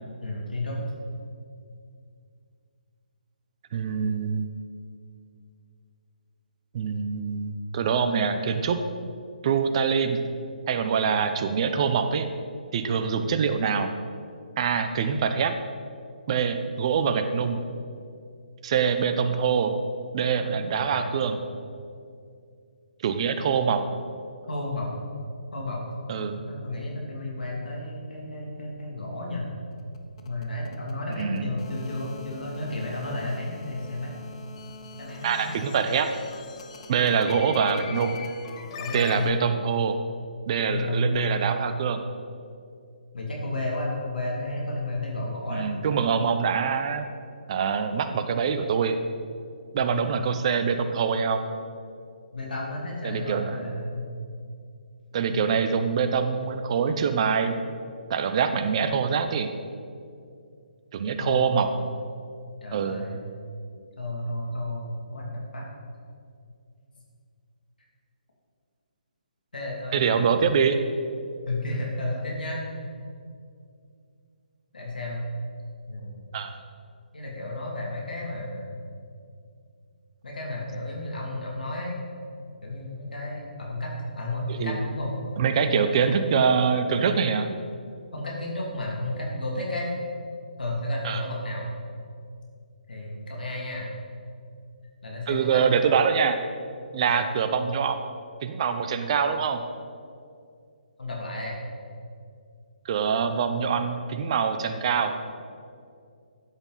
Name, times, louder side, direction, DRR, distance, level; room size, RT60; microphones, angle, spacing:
voice 1, 0.2-0.8 20.5-21.1 24.5-24.9 25.5-25.8 26.2-29.5 30.2-34.1 35.0-35.5 37.0-37.4 38.7-39.3 40.7-41.4 43.1-45.7 49.9-50.0 52.3-54.1 55.3-55.4 61.2-61.6 62.6-63.2 64.0-65.6 69.5-70.3 71.5-72.7 74.7-75.2 75.9-76.3 77.1-78.7 80.2-82.0 82.6-85.1 85.9-86.1 88.1-89.9 90.6-91.7 92.9-93.9 95.0-95.8 96.9-97.3 101.0-101.6, left 1 dB, 75° left, -2 dB, 2.5 m, -32 dB
voice 2, 3.7-4.5 6.7-8.8 9.4-10.2 10.7-12.3 12.7-13.9 14.6-15.5 16.3-17.6 18.6-19.8 20.1-21.4 23.0-23.8 26.1-26.4 31.2-31.5 35.2-36.1 36.9-38.2 38.9-40.0 40.5-42.0 45.5-47.1 47.5-49.0 49.7-51.5 53.0-53.6 55.1-57.6 58.1-59.5 60.9-61.7 62.7-63.0 69.9-70.8 76.3-76.6 84.5-84.8 85.4-87.5 91.0-91.2 95.3-96.4 96.9-98.0 98.4-99.6 102.8-105.2, right 6 dB, 40° right, 8 dB, 0.8 m, -24 dB
sound 1, 29.7-39.3, left 5 dB, 40° left, 0.9 m, -42 dB
12.5 x 8.4 x 4.0 m, 2.3 s
figure-of-eight pair, 140°, 5 cm